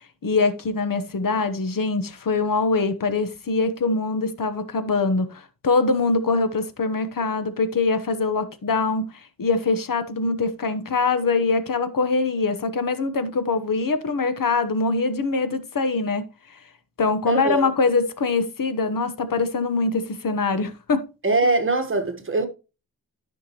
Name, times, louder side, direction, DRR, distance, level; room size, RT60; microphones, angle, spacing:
voice 1, 0.2-9.1 9.4-16.3 17.0-21.1, left 3 dB, 60° left, 1.1 m, -23 dB
voice 2, 17.3-17.7 21.2-22.5, right 2 dB, 35° right, 1.3 m, -22 dB
13.5 x 5.9 x 3.0 m
wide cardioid pair, 145°, 37 cm